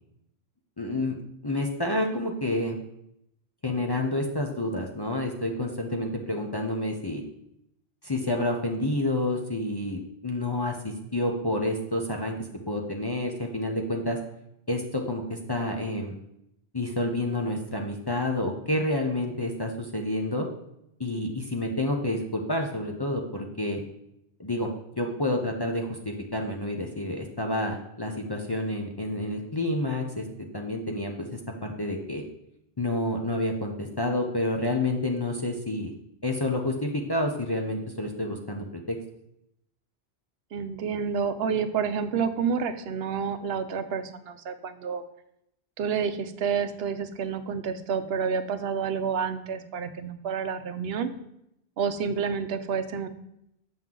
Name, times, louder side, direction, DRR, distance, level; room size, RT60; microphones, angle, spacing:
voice 1, 0.8-1.2 1.4-2.8 3.6-7.2 8.0-12.3 12.7-14.2 14.7-16.1 16.7-20.5 21.0-23.8 24.4-24.7 25.0-30.2 30.5-32.2 32.8-35.9 36.2-39.0, left 1 dB, 25° left, 1 dB, 0.6 m, -29 dB
voice 2, 40.5-45.0 45.8-51.1 51.8-53.1, right 6 dB, 75° right, 10 dB, 0.9 m, -29 dB
7.5 x 6.0 x 3.7 m, 0.79 s
omnidirectional pair, 1.1 m